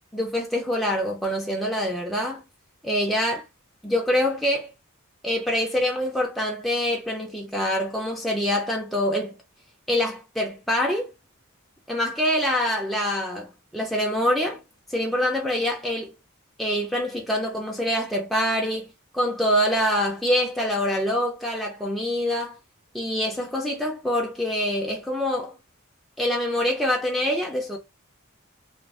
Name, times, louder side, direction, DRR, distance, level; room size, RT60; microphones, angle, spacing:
voice 1, 0.1-2.4 2.8-3.4 3.8-4.7 5.2-9.3 9.9-11.1 11.9-14.6 14.9-16.1 16.6-18.9 19.1-22.6 22.9-25.6 26.2-27.8, equal, ahead, 0.5 m, -25 dB
2.5 x 2.0 x 3.2 m
head